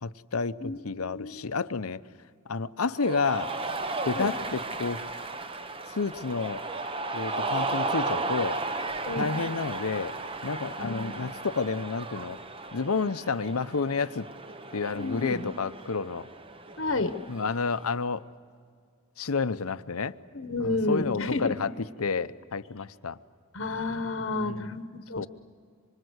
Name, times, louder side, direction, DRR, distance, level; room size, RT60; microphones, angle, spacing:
voice 1, 0.0-2.0 2.5-3.5 4.1-5.0 5.9-6.6 7.1-8.6 9.1-10.1 10.4-12.4 12.7-14.3 14.7-16.3 17.3-18.2 19.2-20.2 20.6-21.7 22.0-23.2 24.3-24.7 25.2-25.3, left 4 dB, 85° left, 13 dB, 0.8 m, -30 dB
voice 2, 0.6-1.5 4.1-4.3 9.0-9.3 10.8-11.3 14.9-15.5 16.8-17.1 20.3-21.5 23.5-25.3, left 3 dB, 65° left, 8 dB, 1.1 m, -31 dB
Cheering, 3.0-17.8, right 3 dB, 25° right, 0.8 m, -35 dB
26.0 x 25.5 x 8.1 m, 2.1 s
head